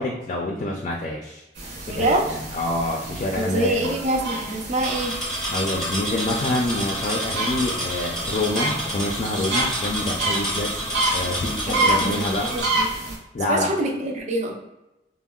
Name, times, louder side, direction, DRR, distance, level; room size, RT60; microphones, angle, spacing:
voice 1, 0.0-1.4 1.9-3.9 5.5-10.7 11.1-12.5 13.3-13.7, left 2 dB, 40° left, -1 dB, 0.3 m, -27 dB
sound 1, 1.6-13.2, right 2 dB, 80° right, 0.7 m, -29 dB
voice 2, 1.8-2.3 3.3-5.1 11.7-13.2 13.5-14.5, right 1 dB, 40° right, 2 dB, 0.4 m, -25 dB
sound 2, 4.8-12.6, equal, 5° left, 0.7 m, -29 dB
3.6 x 2.0 x 2.2 m, 0.93 s
head